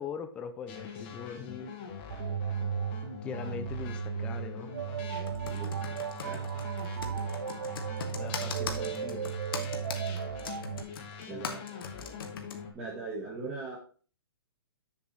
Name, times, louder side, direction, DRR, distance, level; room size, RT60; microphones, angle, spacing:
voice 1, 0.0-1.7 3.2-4.7 8.1-9.4, left 7 dB, 10° left, 9 dB, 0.4 m, -41 dB
sound 1, 0.7-12.7, left 6 dB, 25° left, 1.2 m, -43 dB
sound 2, 2.1-10.8, right 8 dB, 65° right, 0.5 m, -35 dB
Computer keyboard, 5.3-12.6, left 5 dB, 65° left, 1.6 m, -40 dB
voice 2, 11.3-11.6 12.7-13.8, right 3 dB, 15° right, -6 dB, 1.5 m, -39 dB
7.1 x 6.8 x 4.1 m, 0.39 s
hypercardioid pair, 175°, 13 cm